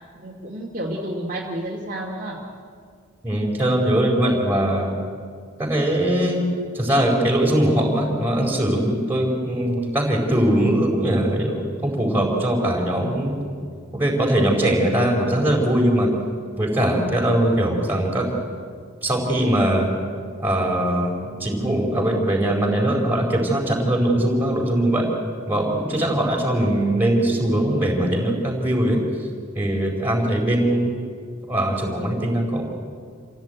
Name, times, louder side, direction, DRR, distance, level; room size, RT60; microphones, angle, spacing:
voice 1, 0.1-2.4, right 1 dB, 40° right, -2 dB, 2.3 m, -30 dB
voice 2, 3.2-4.9 5.6-6.4 6.7-13.4 13.9-16.1 16.6-18.3 19.0-19.9 20.4-25.1 25.5-29.0 29.5-31.0 31.5-32.6, right 1 dB, 10° right, -1 dB, 4.5 m, -21 dB
27.0 x 16.5 x 9.2 m, 2.2 s
head